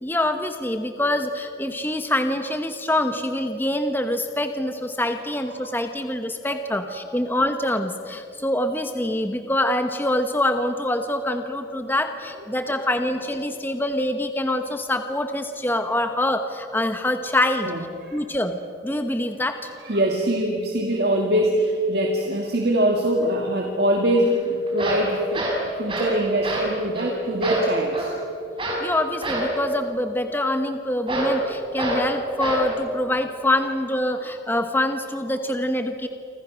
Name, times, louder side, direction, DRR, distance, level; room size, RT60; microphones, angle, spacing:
voice 1, 0.0-17.7 18.1-18.6 18.8-19.7 28.8-36.1, left 1 dB, 10° left, 7 dB, 1.0 m, -25 dB
voice 2, 19.8-25.4 25.8-28.1, right 1 dB, 60° right, 1 dB, 2.2 m, -23 dB
sound 1, 24.2-24.3 24.7-26.2 26.4-26.7 26.9-27.1 27.4-28.1 28.6-28.9 29.2-29.5 31.1-31.4 31.8-32.1 32.4-32.7, right 1 dB, 30° right, 5.8 m, -26 dB
29.0 x 25.5 x 6.4 m, 2.7 s
head